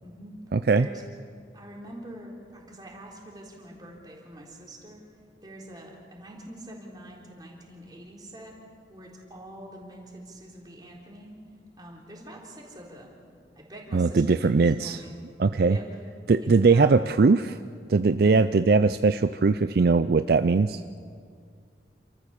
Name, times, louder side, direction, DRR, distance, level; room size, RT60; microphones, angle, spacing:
voice 1, 0.0-0.4 0.7-1.1 1.5-5.0 5.4-8.5 8.9-11.4 11.8-13.2 13.6-15.2 15.6-15.8 16.4-16.9, right 1 dB, 25° right, -2 dB, 3.7 m, -45 dB
voice 2, 0.5-0.9 13.9-15.0 15.4-15.8 16.3-17.6 17.9-20.8, right 4 dB, 60° right, 11 dB, 0.4 m, -20 dB
28.5 x 14.0 x 7.2 m, 2.1 s
head